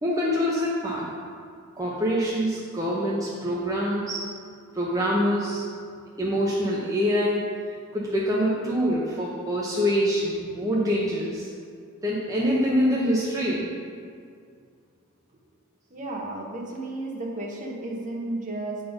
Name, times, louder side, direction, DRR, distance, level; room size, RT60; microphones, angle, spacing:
voice 1, 0.0-1.1 1.8-4.2 4.7-5.6 6.2-7.5 7.9-11.5 12.0-13.7, equal, 15° right, -6 dB, 0.7 m, -25 dB
voice 2, 15.9-18.8, right 2 dB, 35° right, -2 dB, 1.1 m, -33 dB
8.4 x 3.9 x 5.2 m, 2.2 s
head